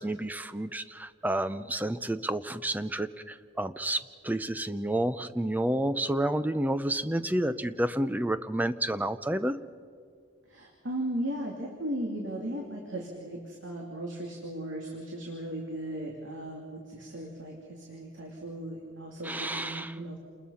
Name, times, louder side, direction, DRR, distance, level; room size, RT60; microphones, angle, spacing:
voice 1, 0.0-9.6 19.2-20.0, right 1 dB, 10° right, 13 dB, 0.6 m, -30 dB
voice 2, 10.5-20.2, right 1 dB, 85° right, -1 dB, 2.9 m, -37 dB
28.5 x 20.5 x 5.7 m, 2.1 s
head